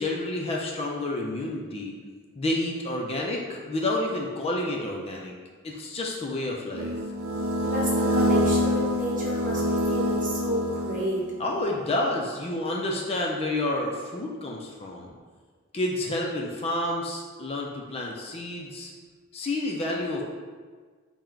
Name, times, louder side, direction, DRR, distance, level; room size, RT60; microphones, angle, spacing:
voice 1, 0.0-1.9 2.4-5.3 5.6-6.9 11.4-15.1 15.7-18.9 19.3-20.2, left 1 dB, 30° left, -1 dB, 0.4 m, -29 dB
sound 1, 6.7-11.4, equal, 70° right, 0.4 m, -26 dB
voice 2, 7.6-11.3, equal, 40° right, -5 dB, 0.9 m, -31 dB
4.4 x 2.1 x 3.7 m, 1.5 s
head